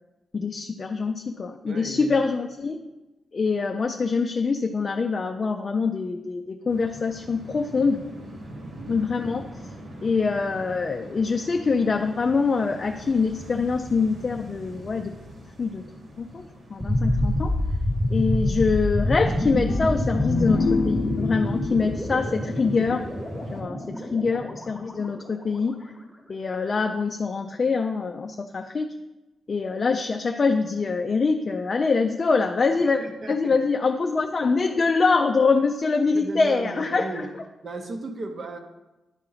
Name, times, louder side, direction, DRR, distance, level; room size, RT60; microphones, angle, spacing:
voice 1, 0.3-2.8 3.3-8.0 8.9-9.5 10.0-15.1 15.6-15.8 16.2-17.5 18.1-23.0 23.5-25.7 26.3-28.9 29.5-33.0 33.3-37.1, left 4 dB, 35° left, 4 dB, 0.4 m, -24 dB
voice 2, 1.7-2.2 8.6-9.0 23.9-24.1 33.0-33.6 36.1-37.3 37.6-38.6, right 2 dB, 40° right, 6 dB, 0.8 m, -36 dB
sound 1, 6.7-23.6, equal, 60° right, 1.4 m, -44 dB
sound 2, 16.8-25.7, left 1 dB, 5° right, 1.1 m, -27 dB
sound 3, 19.7-23.4, left 4 dB, 85° left, 0.6 m, -29 dB
10.5 x 4.3 x 3.9 m, 1.1 s
wide cardioid pair, 155°, 0 cm